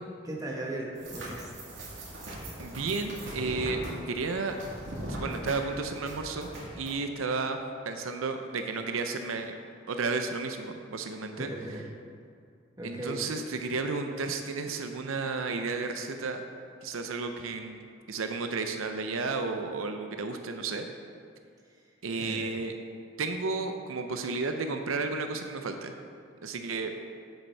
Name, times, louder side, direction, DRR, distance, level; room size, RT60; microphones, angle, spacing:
voice 1, 0.2-1.5 11.4-11.8 12.8-13.2 22.2-22.5, right 1 dB, 15° right, -2 dB, 1.2 m, -37 dB
sound 1, 1.0-6.9, right 1 dB, 70° right, 2.3 m, -40 dB
voice 2, 2.6-3.8 4.1-4.6 5.2-6.5 6.8-7.6 7.9-9.6 9.9-11.5 12.8-16.4 16.8-17.8 18.1-20.9 22.0-22.7 23.2-25.9 26.4-26.9, right 4 dB, 90° right, 6 dB, 0.6 m, -32 dB
8.0 x 7.4 x 4.5 m, 2.3 s
head